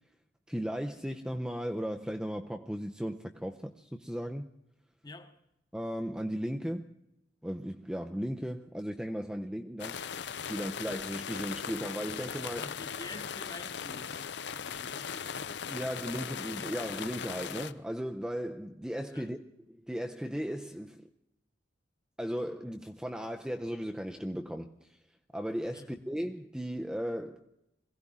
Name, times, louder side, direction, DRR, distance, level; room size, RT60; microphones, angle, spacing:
voice 1, 0.5-4.5 5.7-6.9 7.4-10.0 10.5-12.7 15.7-19.4 19.7-21.0 22.2-24.9 25.3-27.4, equal, 5° right, 0.6 m, -36 dB
voice 2, 5.0-5.4 12.6-15.3 19.1-19.3 25.7-25.9, left 2 dB, 20° left, 1.1 m, -48 dB
sound 1, 9.8-17.7, left 7 dB, 60° left, 0.6 m, -39 dB
21.5 x 16.0 x 3.7 m
head